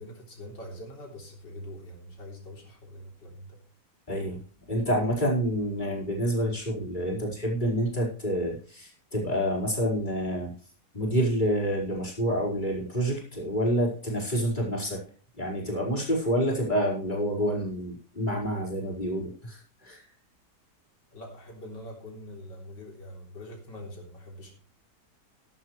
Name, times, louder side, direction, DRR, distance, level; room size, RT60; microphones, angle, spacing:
voice 1, 0.0-3.6 21.1-24.5, left 1 dB, 85° left, -1 dB, 4.2 m, -44 dB
voice 2, 4.1-4.4 4.7-10.5 10.9-15.0 15.4-20.0, equal, 25° left, -4 dB, 4.9 m, -28 dB
14.5 x 11.0 x 3.3 m, 0.41 s
omnidirectional pair, 1.9 m